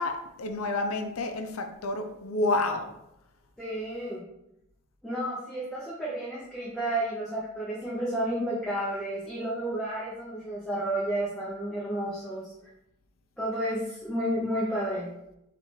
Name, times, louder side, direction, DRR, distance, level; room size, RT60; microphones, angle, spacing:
voice 1, 0.0-2.9, left 2 dB, 70° left, 5 dB, 0.5 m, -29 dB
voice 2, 3.6-4.2 5.0-12.5 13.4-15.1, right 1 dB, ahead, -7 dB, 0.6 m, -31 dB
5.4 x 2.5 x 3.2 m, 0.84 s
head